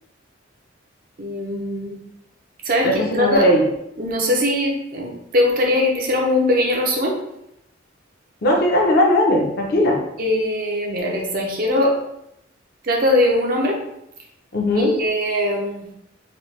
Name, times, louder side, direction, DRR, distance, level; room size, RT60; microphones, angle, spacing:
voice 1, 1.2-2.0 2.6-3.5 4.0-7.2 10.2-12.0 12.8-13.8 14.8-15.9, left 1 dB, 50° right, -1 dB, 0.6 m, -21 dB
voice 2, 2.8-3.6 8.4-10.0 14.5-15.0, left 1 dB, 55° left, 0 dB, 0.6 m, -18 dB
3.0 x 2.2 x 3.2 m, 0.81 s
head